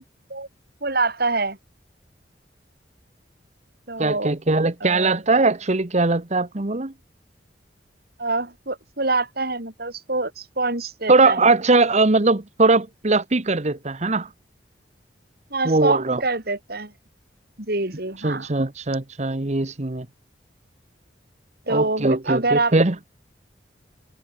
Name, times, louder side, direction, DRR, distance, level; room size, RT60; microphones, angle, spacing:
voice 1, 0.8-1.6 3.9-4.3 4.8-5.2 8.2-11.5 15.5-16.9 17.6-18.5 21.7-22.7, right 3 dB, 60° right, 6.7 m, -25 dB
voice 2, 4.0-6.9 11.1-14.3 15.6-16.2 18.2-20.1 21.7-22.9, right 3 dB, 40° right, 1.2 m, -20 dB
head